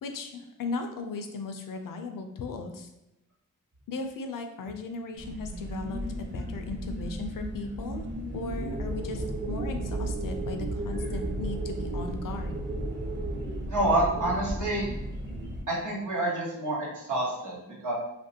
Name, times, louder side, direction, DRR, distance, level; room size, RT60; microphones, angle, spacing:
voice 1, 0.0-2.9 3.9-8.0 8.3-12.6, left 3 dB, 80° left, 6 dB, 0.5 m, -37 dB
sound 1, 5.2-15.6, right 1 dB, 35° right, 0.7 m, -34 dB
voice 2, 13.7-14.9 15.7-17.9, right 1 dB, 70° right, -4 dB, 1.1 m, -28 dB
3.1 x 2.5 x 2.7 m, 0.94 s
wide cardioid pair, 70°, 32 cm